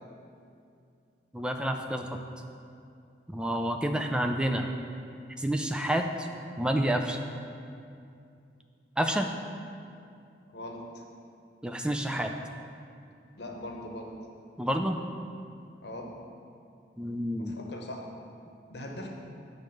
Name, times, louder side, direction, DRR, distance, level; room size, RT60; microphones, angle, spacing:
voice 1, 1.3-2.1 3.3-4.7 5.4-6.3 6.6-7.2 9.0-9.3 11.6-12.3 14.6-15.0 17.0-17.5, right 1 dB, 5° right, 4 dB, 0.3 m, -29 dB
voice 2, 10.5-11.0 13.4-14.1 15.8-16.1 17.4-18.1 18.7-19.1, left 1 dB, 60° left, 1 dB, 0.9 m, -40 dB
8.6 x 3.2 x 6.4 m, 2.5 s
head